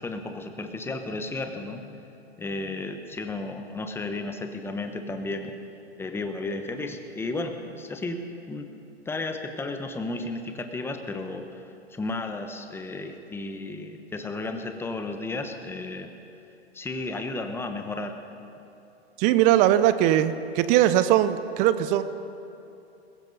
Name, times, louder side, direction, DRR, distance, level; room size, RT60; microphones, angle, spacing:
voice 1, 0.0-2.0 2.4-5.5 6.0-8.2 8.5-8.7 9.1-11.6 11.9-16.1 16.7-18.2, left 2 dB, 5° left, 6 dB, 1.0 m, -33 dB
voice 2, 19.2-22.0, right 12 dB, 25° right, 13 dB, 0.5 m, -20 dB
21.5 x 15.5 x 4.1 m, 2.8 s
hypercardioid pair, 125°, 33 cm